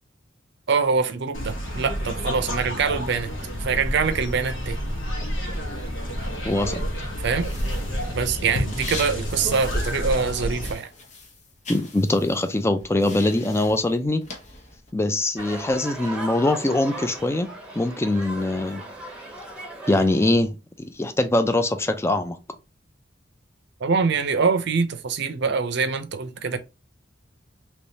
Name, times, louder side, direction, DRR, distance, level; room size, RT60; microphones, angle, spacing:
voice 1, 0.7-3.3 3.6-4.8 7.2-7.5 8.1-10.9 23.8-26.6, right 5 dB, 65° right, 0.5 m, -24 dB
sound 1, 1.3-10.7, equal, 75° left, 1.2 m, -29 dB
voice 2, 6.5-6.8 11.7-14.2 14.9-17.5 17.8-18.8 19.9-22.4, left 2 dB, 15° left, 0.4 m, -23 dB
sound 2, 7.4-10.3 10.6-14.9, left 3 dB, 40° left, 0.9 m, -41 dB
sound 3, 15.4-20.3, right 2 dB, 5° right, 0.9 m, -37 dB
3.4 x 3.0 x 2.7 m
head